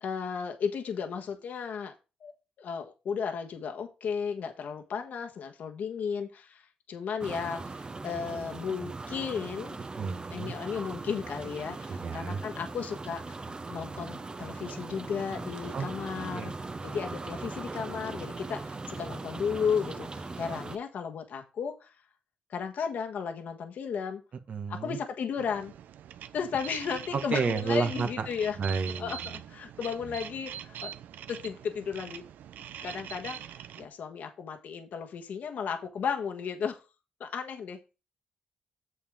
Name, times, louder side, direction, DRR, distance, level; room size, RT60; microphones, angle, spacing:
voice 1, 0.0-1.9 2.2-2.3 2.6-9.8 10.3-16.5 16.8-21.9 22.5-24.2 24.7-25.7 26.3-28.6 29.0-30.9 31.3-32.2 32.8-36.8 37.2-37.8, left 6 dB, 70° left, 4 dB, 1.5 m, -34 dB
sound 1, 7.2-20.8, right 3 dB, 30° right, 0.9 m, -40 dB
voice 2, 9.9-10.5 11.9-12.4 15.7-15.9 16.3-16.5 24.5-25.0 27.1-28.3 28.5-29.4 30.1-30.2, right 5 dB, 60° right, 7 dB, 1.5 m, -31 dB
sound 2, 25.4-33.9, right 10 dB, 80° right, 0.5 m, -43 dB
8.4 x 7.1 x 3.7 m, 0.29 s
cardioid pair, 65°, 3 cm